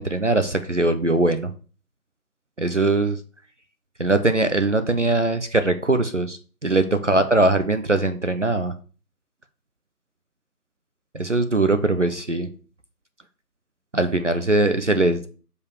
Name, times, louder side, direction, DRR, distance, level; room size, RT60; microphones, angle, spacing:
voice 1, 0.0-1.5 2.6-3.2 4.0-8.7 11.1-12.5 13.9-15.3, right 2 dB, 50° right, 9 dB, 0.7 m, -21 dB
5.5 x 4.8 x 6.3 m, 0.38 s
figure-of-eight pair, 170°, 47 cm